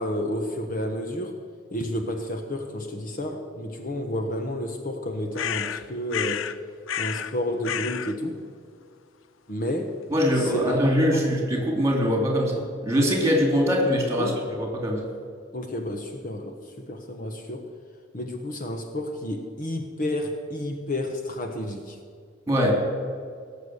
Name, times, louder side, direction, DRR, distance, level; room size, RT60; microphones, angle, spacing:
voice 1, 0.0-1.4 1.7-6.4 7.0-8.4 9.5-10.0 10.4-11.3 14.1-14.4 15.5-17.7 18.1-22.0, left 1 dB, 45° left, 4 dB, 1.1 m, -31 dB
sound 1, 5.4-6.6 6.9-7.3 7.6-8.2, left 9 dB, 85° left, 0.5 m, -30 dB
voice 2, 10.1-15.1 22.5-22.7, equal, 15° right, 0 dB, 3.0 m, -23 dB
17.5 x 6.8 x 8.0 m, 2.2 s
head